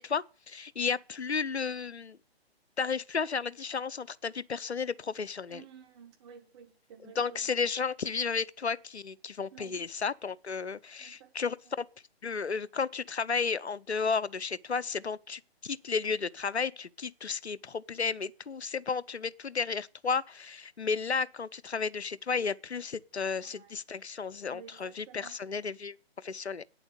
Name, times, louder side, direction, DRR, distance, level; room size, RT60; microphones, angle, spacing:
voice 1, 0.0-2.2 2.8-5.6 7.0-11.9 12.2-26.6, left 5 dB, 85° left, 0.7 m, -33 dB
voice 2, 5.5-7.5 9.5-9.8 11.0-11.6 23.4-23.8 24.5-25.4, right 8 dB, 25° right, 1.8 m, -53 dB
8.9 x 7.0 x 8.2 m
figure-of-eight pair, 140°, 32 cm